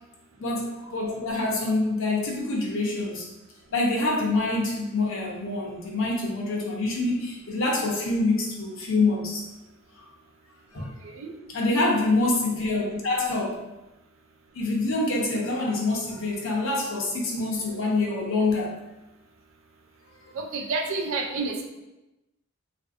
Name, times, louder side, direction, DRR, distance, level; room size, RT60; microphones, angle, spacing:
voice 1, 0.4-3.3 3.7-9.4 10.0-10.1 10.7-10.9 11.5-13.6 14.5-18.8 20.2-20.3, left 2 dB, 65° left, -1 dB, 0.7 m, -26 dB
voice 2, 10.8-11.3 20.3-21.6, right 3 dB, 65° right, 3 dB, 0.5 m, -30 dB
3.5 x 2.5 x 2.4 m, 1.0 s
head